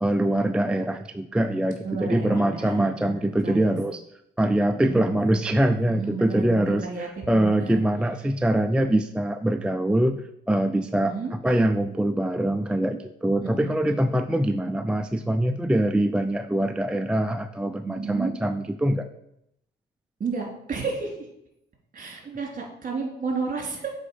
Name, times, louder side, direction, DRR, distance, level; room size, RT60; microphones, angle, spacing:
voice 1, 0.0-4.0 4.4-10.2 10.5-19.1, right 1 dB, 5° right, 8 dB, 0.3 m, -24 dB
voice 2, 1.8-3.8 4.7-5.2 5.9-7.8 10.9-11.3 13.4-14.0 17.8-18.3 20.2-21.2 21.9-23.9, right 4 dB, 40° right, 1 dB, 2.6 m, -32 dB
7.0 x 4.8 x 5.1 m, 0.79 s
cardioid pair, 90°, 20 cm